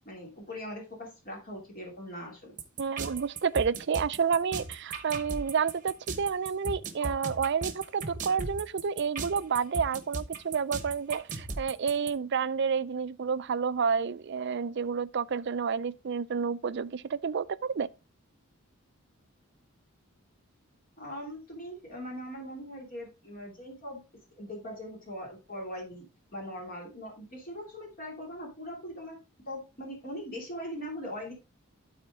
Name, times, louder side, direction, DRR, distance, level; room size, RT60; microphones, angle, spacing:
voice 1, 0.0-2.6 21.0-24.0 24.4-26.0 26.3-29.2 29.5-31.3, equal, 40° left, 2.7 m, -41 dB
sound 1, 2.6-12.1, right 4 dB, 35° right, 1.0 m, -37 dB
voice 2, 2.8-17.9, right 6 dB, 55° right, 0.4 m, -30 dB
12.0 x 4.3 x 3.6 m
head